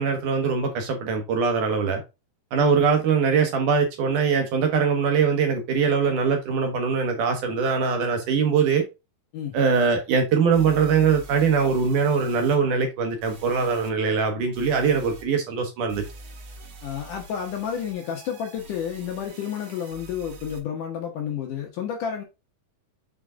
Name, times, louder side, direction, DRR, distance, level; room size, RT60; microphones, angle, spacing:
voice 1, 0.0-2.0 2.5-8.8 9.5-16.0, right 5 dB, 70° right, 2.1 m, -22 dB
sound 1, 9.9-10.0 10.5-12.6 13.2-13.9 14.5-15.3 15.9-20.6, right 3 dB, 50° right, 2.0 m, -45 dB
voice 2, 16.8-22.2, left 8 dB, 65° left, 2.2 m, -31 dB
6.5 x 4.5 x 3.6 m
omnidirectional pair, 4.5 m